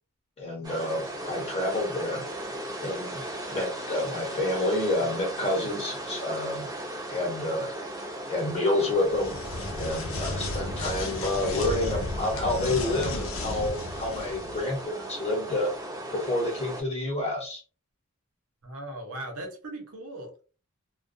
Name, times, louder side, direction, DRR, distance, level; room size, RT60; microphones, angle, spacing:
voice 1, 0.4-2.3 2.8-3.2 3.5-6.7 7.1-7.7 8.3-9.4 9.8-15.7 16.1-17.6, left 2 dB, 30° left, 0.8 m, -29 dB
sound 1, 0.6-16.8, right 1 dB, 20° right, 0.6 m, -37 dB
sound 2, 9.0-14.7, left 2 dB, 65° left, 0.6 m, -34 dB
voice 2, 18.6-20.4, right 1 dB, 80° right, 0.8 m, -38 dB
2.3 x 2.2 x 2.5 m
head